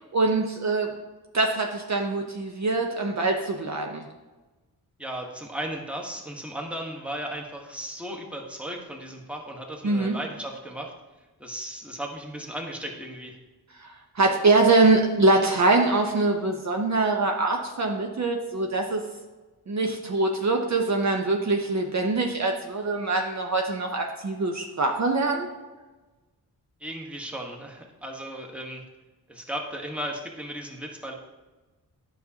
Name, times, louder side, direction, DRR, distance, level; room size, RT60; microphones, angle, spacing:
voice 1, 0.1-0.9 1.3-4.0 9.8-10.1 13.8-19.0 19.7-25.5, right 3 dB, 45° right, 2 dB, 0.7 m, -23 dB
voice 2, 5.0-10.9 11.4-13.4 26.8-28.8 29.3-31.1, right 1 dB, 5° right, 1 dB, 1.2 m, -36 dB
9.2 x 5.8 x 2.8 m, 1.2 s
cardioid pair, 65°, 39 cm